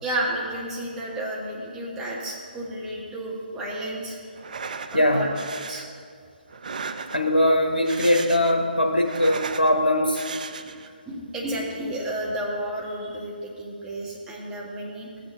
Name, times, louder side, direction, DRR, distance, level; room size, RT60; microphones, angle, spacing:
voice 1, 0.0-4.2 4.9-5.3 5.7-5.8 10.6-10.7 11.0-15.1, right 1 dB, 10° right, -4 dB, 1.5 m, -31 dB
sound 1, 4.4-5.0 5.4-5.9 6.5-7.4 7.8-8.6 8.9-9.7 10.1-10.9, right 5 dB, 55° right, 0.5 m, -36 dB
voice 2, 4.9-5.3 7.1-10.2, left 1 dB, 90° left, 2 dB, 1.0 m, -21 dB
14.5 x 8.5 x 2.7 m, 2.3 s
figure-of-eight pair, 140°, 5 cm